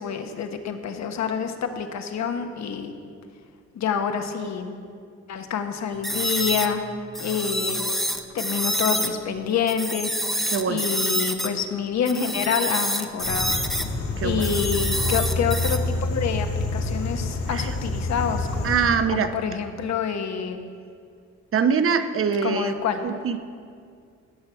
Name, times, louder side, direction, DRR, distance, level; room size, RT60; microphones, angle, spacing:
voice 1, 0.0-2.9 3.7-4.7 5.3-6.8 7.2-7.8 8.3-13.5 14.2-18.7 19.1-20.6 22.4-23.0, left 7 dB, 65° left, 6 dB, 1.2 m, -27 dB
sound 1, 6.0-9.1 9.7-11.5 12.0-13.9 14.4-15.8, equal, ahead, 0.8 m, -27 dB
voice 2, 10.5-10.8 14.2-14.5 17.5-17.7 18.6-19.3 21.5-22.8 23.0-23.4, right 6 dB, 45° right, 10 dB, 0.8 m, -23 dB
sound 2, 13.2-18.9, left 2 dB, 80° left, 2.5 m, -27 dB
17.0 x 6.7 x 5.7 m, 2.2 s
cardioid pair, 90°, 30 cm